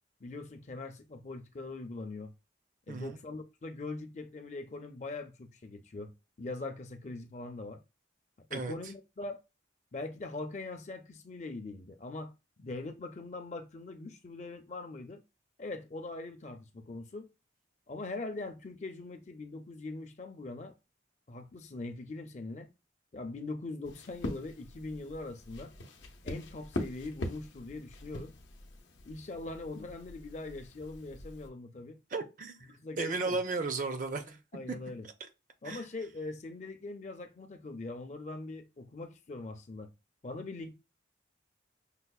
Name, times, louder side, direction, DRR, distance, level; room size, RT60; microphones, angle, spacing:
voice 1, 0.2-2.3 2.9-6.1 6.4-7.8 8.5-9.4 9.9-12.3 12.6-15.2 15.6-17.3 17.9-20.7 21.3-22.7 23.1-25.7 26.2-28.3 29.1-32.0 32.7-33.4 34.5-35.1 35.6-39.9 40.2-40.7, left 2 dB, 40° left, 0.5 m, -42 dB
voice 2, 2.9-3.2 8.5-8.7 32.1-32.7 33.0-34.4 35.6-35.9, right 3 dB, 45° right, 0.5 m, -34 dB
sound 1, 23.8-31.5, left 1 dB, 90° left, 0.6 m, -43 dB
5.4 x 2.0 x 2.3 m
head